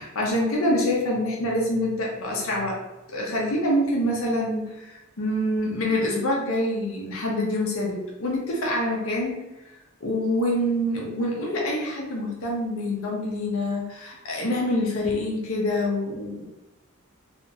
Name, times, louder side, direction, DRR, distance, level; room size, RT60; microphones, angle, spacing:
voice 1, 0.0-2.8 3.1-9.4 10.0-16.4, left 1 dB, 75° left, -2 dB, 0.7 m, -26 dB
2.8 x 2.5 x 2.4 m, 1.0 s
head